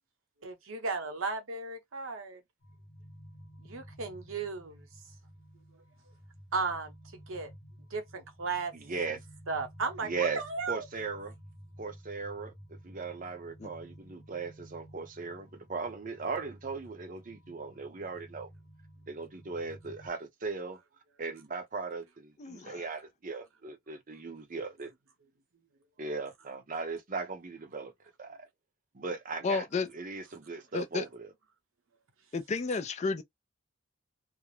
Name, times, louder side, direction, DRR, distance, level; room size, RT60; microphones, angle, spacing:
voice 1, 0.4-2.4 3.6-4.9 6.5-7.5 7.9-8.7 9.5-10.9, right 4 dB, 70° right, 0.8 m, -35 dB
sound 1, 2.6-20.1, equal, 50° left, 0.9 m, -53 dB
voice 2, 8.7-9.2 10.0-10.4 10.7-11.3 11.8-18.5 19.1-20.8 21.2-24.9 26.0-27.9 28.2-28.5 28.9-29.7 29.9-31.3, right 4 dB, 40° right, 0.6 m, -38 dB
voice 3, 22.4-22.9 29.4-29.9 30.7-31.0 32.3-33.2, left 4 dB, 30° left, 0.3 m, -32 dB
2.3 x 2.0 x 3.1 m
head